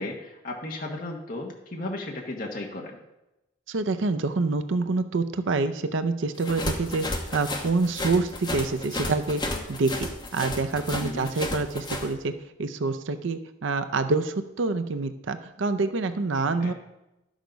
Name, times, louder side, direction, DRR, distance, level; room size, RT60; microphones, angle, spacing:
voice 1, 0.0-3.0 11.0-11.3 16.6-16.7, left 2 dB, 45° left, 1 dB, 1.2 m, -35 dB
voice 2, 3.7-9.4 9.7-12.3 12.6-16.7, right 3 dB, 80° right, 9 dB, 0.6 m, -27 dB
sound 1, 6.4-12.1, left 2 dB, 25° left, 1.0 m, -32 dB
11.5 x 6.5 x 5.1 m, 0.93 s
head